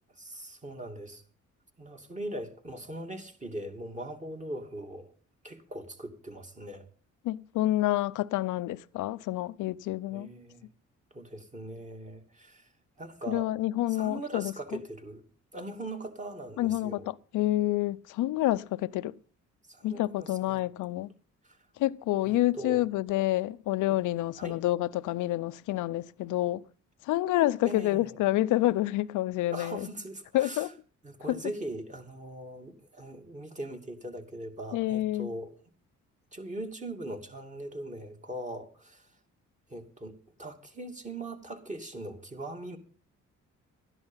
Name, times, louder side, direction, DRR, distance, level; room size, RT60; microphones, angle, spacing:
voice 1, 0.1-1.2 1.8-5.1 5.4-6.9 10.1-10.7 11.1-12.7 13.0-13.5 13.9-15.2 15.5-17.1 19.7-20.6 21.4-21.6 22.3-22.8 23.9-24.0 24.4-24.6 27.6-28.2 29.5-30.7 31.0-35.5 36.3-39.1 39.7-42.8, right 1 dB, 25° right, 2.7 m, -40 dB
voice 2, 7.2-10.3 13.3-14.5 16.6-19.1 19.8-21.1 21.8-26.6 27.0-29.9 30.3-30.7 31.3-31.4 34.7-35.3, left 15 dB, 85° left, 0.6 m, -28 dB
12.5 x 10.5 x 5.6 m
cardioid pair, 90°, 30 cm